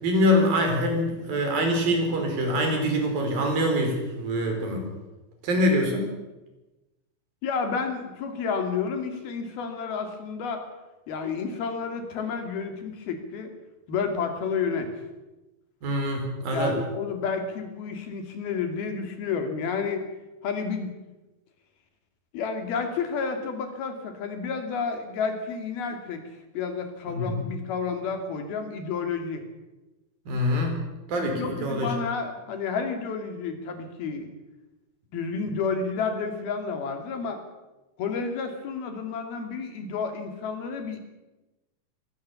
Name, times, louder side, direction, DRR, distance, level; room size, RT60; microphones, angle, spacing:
voice 1, 0.0-4.8 5.4-6.0 15.8-16.8 27.1-27.4 30.3-30.7 31.1-31.9, equal, 65° right, 3 dB, 6.0 m, -24 dB
voice 2, 7.4-10.6 11.1-13.5 13.9-14.9 16.5-20.0 20.4-20.9 22.3-26.2 26.5-29.4 31.3-34.3 35.1-37.4 38.0-41.0, left 5 dB, 75° left, 6 dB, 4.4 m, -30 dB
23.0 x 18.0 x 7.1 m, 1.1 s
omnidirectional pair, 4.4 m